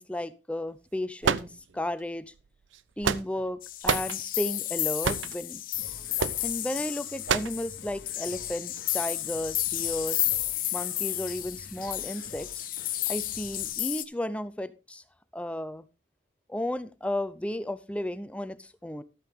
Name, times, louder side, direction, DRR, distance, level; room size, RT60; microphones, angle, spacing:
voice 1, 0.0-2.3 3.0-5.6 6.4-10.2 10.7-12.6 13.1-15.0 15.3-15.8 16.5-19.0, left 1 dB, 5° left, 14 dB, 0.5 m, -34 dB
sound 1, 1.2-2.0 2.7-3.5 3.8-4.2 5.0-5.4 6.2-6.4 7.3-7.6, right 6 dB, 90° right, 0.6 m, -27 dB
sound 2, 3.6-14.0, left 14 dB, 45° left, 0.8 m, -32 dB
Singing, 5.7-13.7, left 2 dB, 70° left, 1.2 m, -50 dB
12.5 x 8.8 x 3.6 m, 0.31 s
head